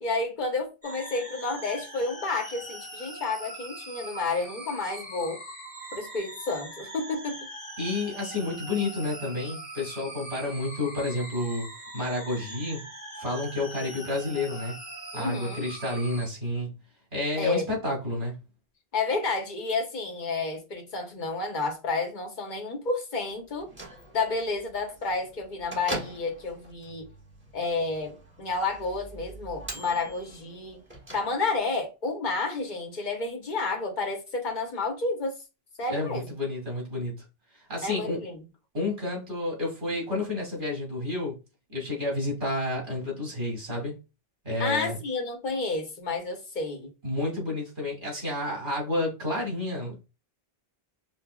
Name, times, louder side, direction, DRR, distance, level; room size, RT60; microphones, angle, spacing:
voice 1, 0.0-5.4 5.9-7.4 15.1-15.7 17.4-17.6 18.9-23.7 24.1-27.1 27.5-30.8 31.1-35.3 35.8-36.3 37.8-38.4 44.6-46.9, left 3 dB, 50° left, 1.1 m, -30 dB
sound 1, 0.8-16.3, right 1 dB, 10° left, 0.9 m, -42 dB
voice 2, 7.8-11.7 11.9-12.8 13.2-14.8 15.1-16.8 17.1-18.4 35.9-37.2 37.7-38.2 38.7-41.4 41.7-44.0 44.4-45.0 47.0-50.1, left 2 dB, 55° right, 2.3 m, -30 dB
Bell / Microwave oven, 23.5-31.8, right 1 dB, 10° right, 1.2 m, -43 dB
5.4 x 2.1 x 2.3 m
omnidirectional pair, 1.0 m